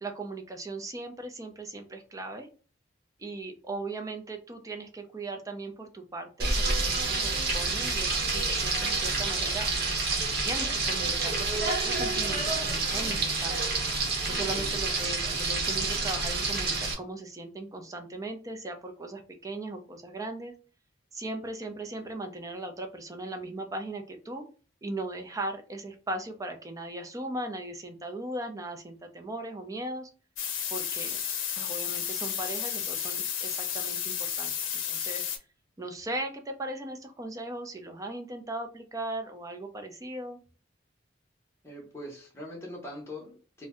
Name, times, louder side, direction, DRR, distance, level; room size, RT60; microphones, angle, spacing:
voice 1, 0.0-2.5 3.2-9.7 10.4-11.5 11.8-13.6 14.3-20.5 21.1-24.4 24.8-30.1 30.7-31.2 31.5-34.5 34.8-35.2 35.8-40.4, right 2 dB, 15° right, 0.4 m, -38 dB
Frying (food), 6.4-16.9, right 3 dB, 55° right, 0.9 m, -28 dB
sound 1, 30.4-35.4, left 8 dB, 85° left, 0.6 m, -32 dB
voice 2, 41.6-43.7, left 1 dB, 15° left, 0.7 m, -42 dB
2.6 x 2.1 x 3.5 m
head